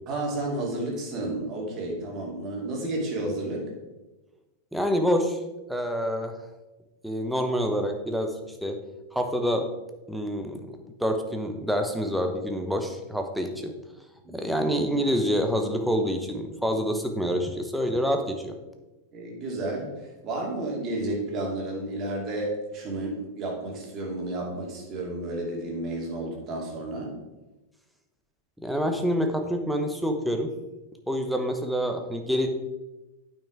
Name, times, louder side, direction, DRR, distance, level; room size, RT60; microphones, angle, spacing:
voice 1, 0.1-3.7 14.2-14.5 19.1-19.9 20.2-27.1, right 2 dB, 30° right, -1 dB, 2.6 m, -31 dB
voice 2, 4.7-5.4 5.7-6.3 7.0-8.8 9.1-9.7 10.1-13.7 14.3-18.6 28.6-30.5 31.1-32.5, equal, ahead, 4 dB, 1.0 m, -27 dB
8.9 x 5.8 x 4.6 m, 1.1 s
figure-of-eight pair, 90°, 0 cm